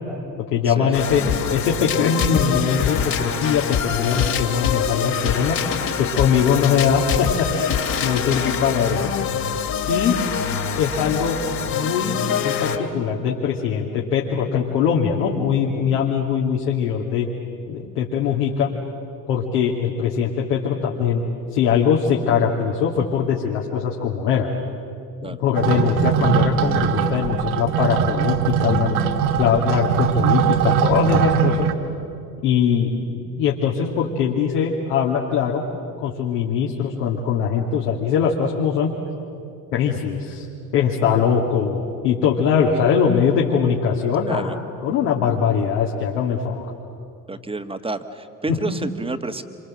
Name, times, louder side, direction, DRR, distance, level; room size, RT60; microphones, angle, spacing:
voice 1, 0.5-1.2 1.5-5.6 6.0-7.5 8.0-9.1 9.9-10.2 10.8-11.4 11.7-12.1 12.4-17.3 17.7-18.7 19.3-21.2 21.5-24.5 25.2-29.0 29.4-31.7 32.4-35.6 36.0-38.9 39.7-40.5 40.7-44.6 44.8-46.7 48.7-48.8, left 7 dB, 70° left, -2 dB, 2.7 m, -21 dB
sound 1, 0.9-12.9, left 7 dB, 45° left, 2.6 m, -24 dB
sound 2, 25.5-31.7, right 8 dB, 70° right, 1.8 m, -21 dB
voice 2, 47.3-49.4, right 2 dB, 10° right, 8 dB, 1.6 m, -29 dB
27.5 x 24.5 x 7.7 m, 2.5 s
hypercardioid pair, 70°, 48 cm